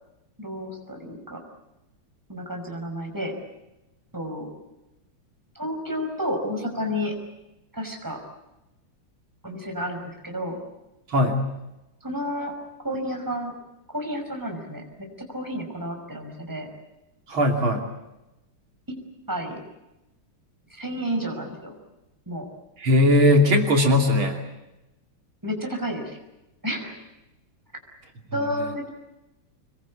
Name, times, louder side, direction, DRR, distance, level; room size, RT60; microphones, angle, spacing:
voice 1, 0.4-1.4 2.3-3.3 4.1-4.5 5.6-7.1 7.7-8.2 9.4-10.6 12.0-12.5 12.8-13.5 13.9-14.8 15.2-16.7 18.9-19.0 19.3-19.6 20.7-21.7 22.3-22.5 25.4-26.2 26.6-26.9 28.3-28.9, equal, 10° right, 2 dB, 5.6 m, -31 dB
voice 2, 11.1-11.4 17.3-17.9 22.8-24.4, left 1 dB, 75° right, 3 dB, 3.7 m, -19 dB
26.5 x 22.0 x 8.5 m, 0.97 s
omnidirectional pair, 2.2 m